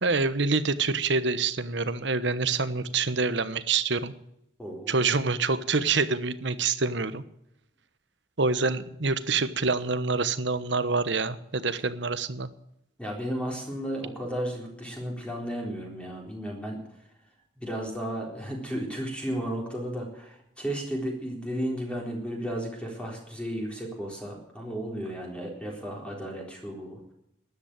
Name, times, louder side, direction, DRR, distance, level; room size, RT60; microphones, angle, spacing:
voice 1, 0.0-4.1 4.9-7.2 8.4-12.5, right 4 dB, 60° right, 13 dB, 1.1 m, -26 dB
voice 2, 4.6-5.0 13.0-16.8 17.6-27.0, equal, 5° left, 0 dB, 3.9 m, -34 dB
13.5 x 11.0 x 8.9 m, 0.79 s
head